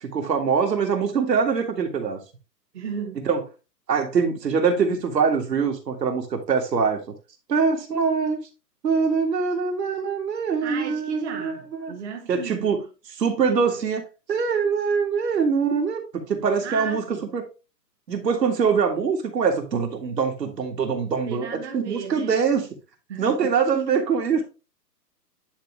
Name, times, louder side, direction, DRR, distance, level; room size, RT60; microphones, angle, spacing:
voice 1, 0.0-2.2 3.3-3.4 3.9-7.0 7.5-8.4 8.8-11.9 12.3-12.9 13.2-14.0 14.3-16.0 16.3-17.0 17.3-17.4 18.1-21.5 21.7-22.7 23.2-24.4, right 5 dB, 75° right, 2.1 m, -23 dB
voice 2, 2.7-3.2 10.6-12.7 16.6-17.3 21.3-22.4 23.1-23.5, right 6 dB, 45° right, 1.1 m, -34 dB
10.0 x 3.7 x 3.2 m
hypercardioid pair, 160°, 50 cm